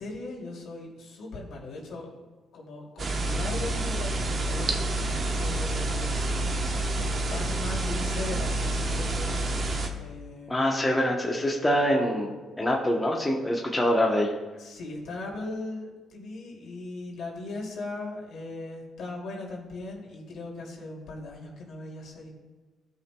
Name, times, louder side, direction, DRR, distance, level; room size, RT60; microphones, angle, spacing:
voice 1, 0.0-2.3 2.5-6.1 6.9-9.4 9.8-10.8 14.6-22.3, left 2 dB, 70° left, -2 dB, 2.7 m, -38 dB
sound 1, 3.0-9.9, right 2 dB, 45° right, 1.1 m, -28 dB
voice 2, 10.5-14.3, equal, 15° left, -1 dB, 1.0 m, -25 dB
17.0 x 5.7 x 2.3 m, 1.3 s
cardioid pair, 90°, 0 cm